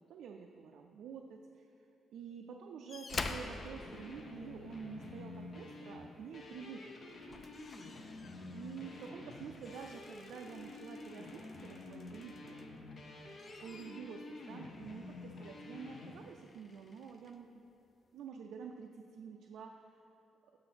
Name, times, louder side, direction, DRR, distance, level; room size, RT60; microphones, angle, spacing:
voice 1, 0.0-1.7 2.1-7.1 8.5-12.7 13.4-17.6 18.1-19.8, right 6 dB, 75° right, 2 dB, 0.3 m, -49 dB
sound 1, 2.9-4.9 6.4-6.6 7.0-12.8 13.2-17.4 18.3-18.4, left 3 dB, 30° left, 0.3 m, -49 dB
sound 2, 3.1-16.2, left 2 dB, 45° left, 0.7 m, -49 dB
6.6 x 3.9 x 5.7 m, 2.8 s
cardioid pair, 145°, 0 cm